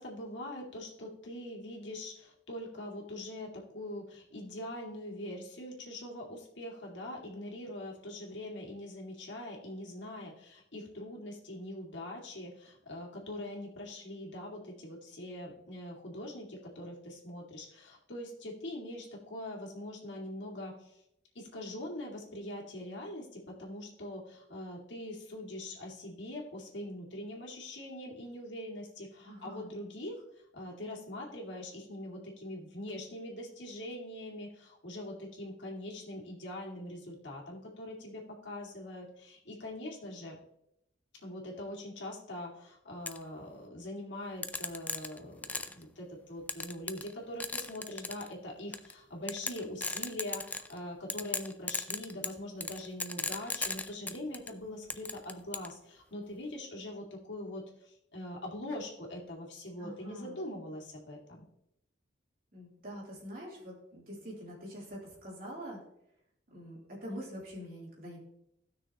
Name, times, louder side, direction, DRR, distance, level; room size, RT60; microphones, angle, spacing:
voice 1, 0.0-21.0 21.3-30.2 30.5-40.4 41.1-61.4, left 1 dB, 75° left, -2 dB, 2.2 m, -43 dB
voice 2, 29.2-29.7 59.8-60.4 62.5-65.8 66.5-68.2, equal, 50° right, -4 dB, 3.3 m, -45 dB
sound 1, 43.1-43.2 44.4-45.8 46.5-47.1 47.4-48.3 48.7-48.9 49.3-50.8 51.1-54.5 54.9-55.7, left 3 dB, 10° left, 0.3 m, -36 dB
16.0 x 6.2 x 2.9 m, 0.79 s
head